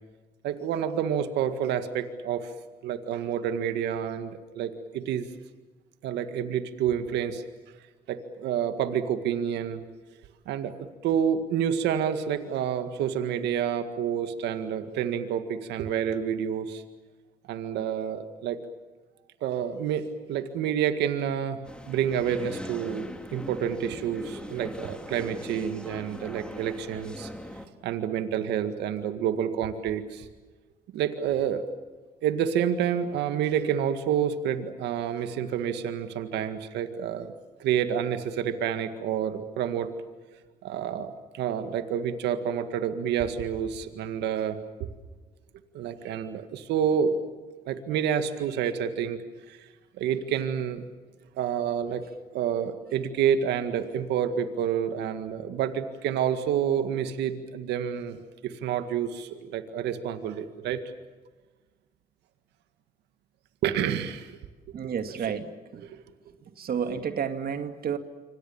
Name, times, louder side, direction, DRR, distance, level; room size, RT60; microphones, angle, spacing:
voice 1, 0.4-2.5 2.8-5.3 6.0-7.4 8.1-9.8 10.5-10.8 11.0-16.8 17.5-18.6 19.4-21.6 21.9-27.3 27.8-30.3 30.9-31.6 32.2-37.3 37.6-39.9 40.6-44.9 45.7-47.1 47.7-49.2 49.5-49.7 50.0-50.8 51.4-52.1 52.3-60.8 63.6-64.4 64.8-64.9 65.8-66.0, right 8 dB, 85° right, 9 dB, 1.9 m, -28 dB
sound 1, 21.6-27.7, left 1 dB, 5° left, 3.6 m, -40 dB
voice 2, 64.7-65.8 66.6-68.0, right 7 dB, 60° right, 8 dB, 2.3 m, -31 dB
27.0 x 25.5 x 7.3 m, 1.3 s
supercardioid pair, 70°, 17 cm